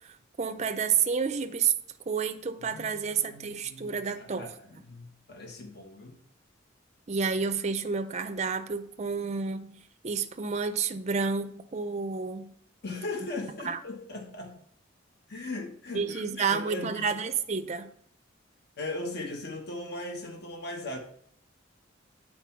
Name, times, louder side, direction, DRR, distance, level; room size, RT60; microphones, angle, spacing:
voice 1, 0.4-1.7 2.1-4.5 7.1-12.5 13.7-13.8 15.9-17.9, right 6 dB, 35° right, 8 dB, 0.5 m, -30 dB
voice 2, 2.7-6.2 12.8-14.5 15.3-17.1 18.8-21.0, left 2 dB, 55° left, 2 dB, 1.2 m, -38 dB
8.4 x 4.4 x 5.8 m, 0.65 s
head